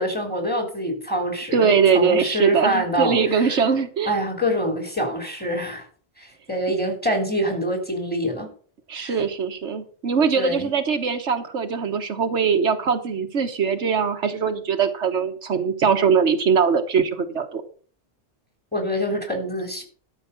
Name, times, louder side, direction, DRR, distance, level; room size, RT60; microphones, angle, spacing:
voice 1, 0.0-3.6 4.1-5.9 6.2-8.5 9.0-9.2 10.4-10.7 18.7-19.8, equal, 10° left, 3 dB, 3.6 m, -25 dB
voice 2, 1.5-4.1 8.9-17.6, right 6 dB, 85° right, 7 dB, 1.5 m, -21 dB
12.5 x 5.5 x 6.9 m, 0.42 s
omnidirectional pair, 1.2 m